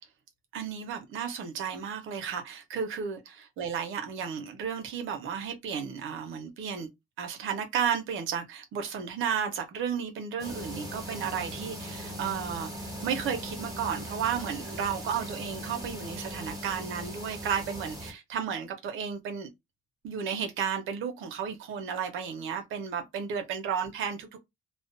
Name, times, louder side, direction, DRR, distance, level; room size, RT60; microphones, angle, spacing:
voice 1, 0.5-6.9 7.2-19.5 20.0-24.4, right 7 dB, 85° right, 0.8 m, -33 dB
sound 1, 10.4-18.1, equal, 20° right, 1.3 m, -39 dB
2.4 x 2.2 x 2.5 m
cardioid pair, 90°, 20 cm